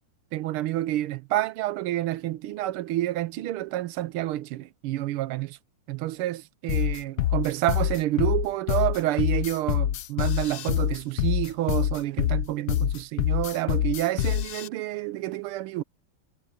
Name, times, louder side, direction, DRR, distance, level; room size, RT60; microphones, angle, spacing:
voice 1, 0.3-5.6 5.9-15.8, right 15 dB, 85° right, 1.6 m, -29 dB
sound 1, 6.7-14.7, left 12 dB, 65° left, 1.0 m, -25 dB
omnidirectional pair, 2.3 m